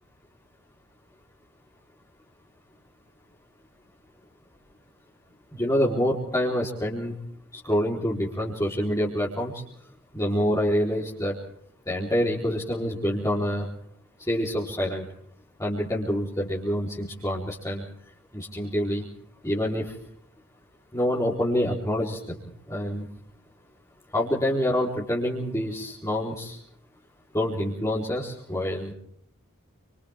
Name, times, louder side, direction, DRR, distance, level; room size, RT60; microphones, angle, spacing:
voice 1, 5.5-7.1 7.6-9.6 10.1-11.3 11.9-13.7 14.3-15.0 15.6-17.8 18.3-19.0 19.4-19.9 20.9-22.4 22.7-23.1 24.1-26.6 27.3-28.9, equal, 15° left, -5 dB, 4.1 m, -26 dB
29.5 x 27.0 x 3.7 m, 0.66 s
head